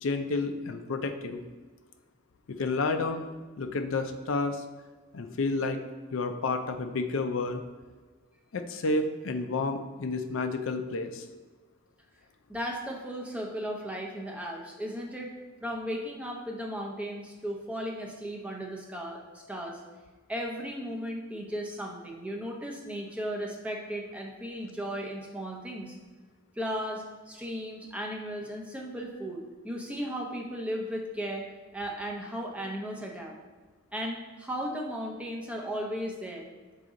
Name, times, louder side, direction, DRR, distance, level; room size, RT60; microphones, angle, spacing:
voice 1, 0.0-1.4 2.5-3.3 3.6-4.6 5.1-5.8 6.1-7.6 8.5-11.2, left 3 dB, 75° left, 7 dB, 0.5 m, -30 dB
voice 2, 12.5-15.4 15.6-19.8 20.3-26.0 26.6-33.3 33.9-36.5, equal, 5° right, 0 dB, 0.7 m, -36 dB
6.6 x 4.0 x 3.7 m, 1.3 s
head